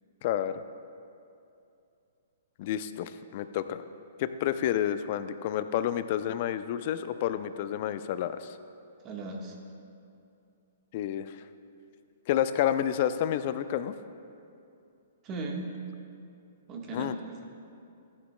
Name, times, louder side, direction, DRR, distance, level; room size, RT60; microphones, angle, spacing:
voice 1, 0.2-0.6 2.6-3.8 4.2-8.6 10.9-11.4 12.3-13.9 16.9-17.1, left 11 dB, 45° left, 12 dB, 0.4 m, -29 dB
voice 2, 9.0-9.6 15.2-15.7 16.7-17.4, right 2 dB, 30° right, 1 dB, 1.3 m, -37 dB
15.0 x 9.7 x 2.2 m, 2.6 s
figure-of-eight pair, 120°, 0 cm